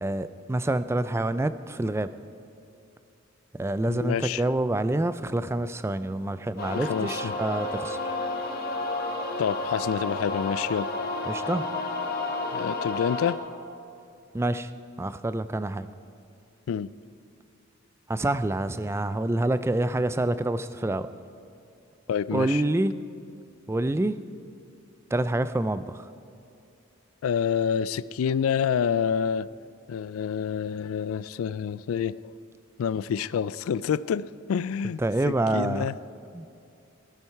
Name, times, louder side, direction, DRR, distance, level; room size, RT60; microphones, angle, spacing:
voice 1, 0.0-2.1 3.5-8.0 11.3-11.7 14.3-14.7 15.0-15.9 18.1-21.1 22.3-22.9 23.7-24.2 25.1-26.1 35.0-35.9 36.3-36.4, right 2 dB, 10° right, 13 dB, 0.3 m, -27 dB
voice 2, 3.9-4.4 6.7-7.3 9.4-10.9 12.5-13.4 16.7-16.9 22.1-22.6 27.2-29.5 29.9-32.3 32.8-35.0 35.3-35.9, left 7 dB, 85° left, 18 dB, 0.3 m, -28 dB
sound 1, 6.6-13.4, left 2 dB, 45° left, 1.2 m, -31 dB
15.5 x 13.0 x 4.6 m, 2.6 s
head